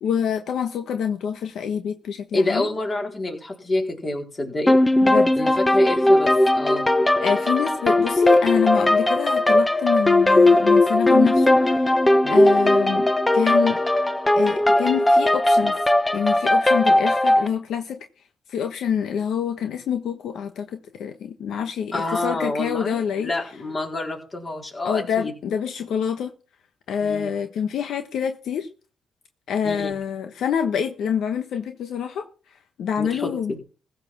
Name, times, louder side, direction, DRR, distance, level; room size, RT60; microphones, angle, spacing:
voice 1, 0.0-2.7 5.0-5.3 7.2-12.0 12.3-13.8 14.4-15.8 16.1-18.0 18.5-23.3 24.8-26.3 26.9-28.7 29.5-32.3 32.8-33.5, left 7 dB, 70° left, 1.1 m, -26 dB
voice 2, 2.3-4.8 5.4-6.3 6.5-6.9 12.2-12.4 21.9-25.3 27.0-27.3 29.6-30.0 33.0-33.6, left 2 dB, 30° left, 4.3 m, -27 dB
sound 1, 4.7-17.5, left 1 dB, 15° left, 1.0 m, -18 dB
15.5 x 6.5 x 6.0 m
cardioid pair, 90°, 0 cm